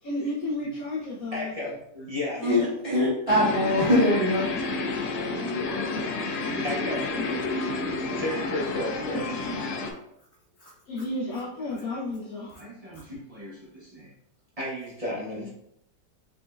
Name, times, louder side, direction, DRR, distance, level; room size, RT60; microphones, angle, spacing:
voice 1, 0.0-1.5 2.4-2.8 7.1-7.4 10.9-12.6, left 2 dB, 60° left, -7 dB, 1.2 m, -32 dB
voice 2, 1.3-2.4 4.9-5.5 6.2-7.3 7.8-9.5 11.6-11.8 12.6-14.1 14.6-15.5, left 1 dB, 25° right, -7 dB, 0.9 m, -35 dB
voice 3, 2.4-4.5 6.5-6.6, left 1 dB, 50° right, -6 dB, 0.3 m, -23 dB
sound 1, 3.3-9.9, left 3 dB, 85° left, 1.4 m, -30 dB
5.0 x 3.4 x 2.5 m, 0.77 s
omnidirectional pair, 1.9 m